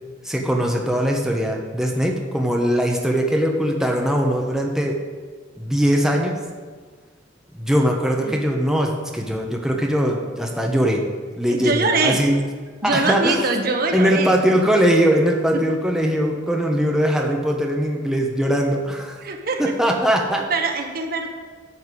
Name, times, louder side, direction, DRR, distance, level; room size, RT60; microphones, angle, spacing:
voice 1, 0.2-5.0 5.6-6.3 7.5-11.0 11.4-12.3 12.8-13.4 13.9-19.2 19.6-20.4, equal, 5° right, 0 dB, 1.1 m, -21 dB
voice 2, 11.5-12.2 12.8-14.4 15.5-15.6 19.2-19.7 20.5-21.3, right 3 dB, 55° right, 3 dB, 1.5 m, -23 dB
12.0 x 5.8 x 8.4 m, 1.5 s
head